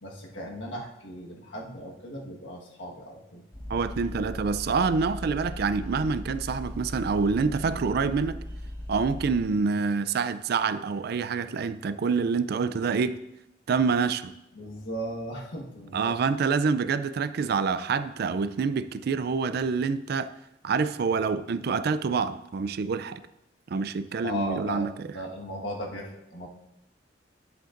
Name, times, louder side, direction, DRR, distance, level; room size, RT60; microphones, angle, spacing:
voice 1, 0.0-3.4 14.5-16.2 24.2-26.5, equal, 85° left, -1 dB, 1.5 m, -37 dB
sound 1, 3.5-9.4, left 1 dB, 25° left, 1.6 m, -38 dB
voice 2, 3.7-8.4 8.9-13.2 13.7-14.3 15.9-20.3 20.6-23.2 23.7-24.9, right 5 dB, 60° right, 13 dB, 0.4 m, -26 dB
10.0 x 7.9 x 2.6 m, 0.86 s
head